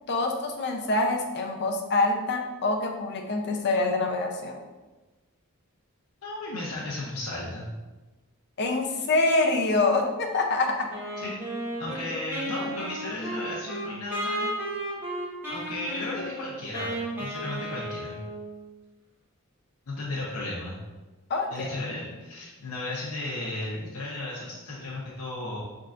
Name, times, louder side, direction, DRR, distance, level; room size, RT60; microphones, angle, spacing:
voice 1, 0.1-4.6 8.6-10.9 21.3-21.7, left 2 dB, 55° left, 2 dB, 0.6 m, -25 dB
voice 2, 6.2-7.7 11.2-11.3 11.8-14.5 15.5-18.2 19.9-20.8 21.5-25.6, left 2 dB, 90° left, -5 dB, 0.8 m, -35 dB
Wind instrument woodwind instrument, 10.9-18.6, right 1 dB, 10° right, 1.4 m, -34 dB
5.6 x 3.8 x 2.5 m, 1.2 s
head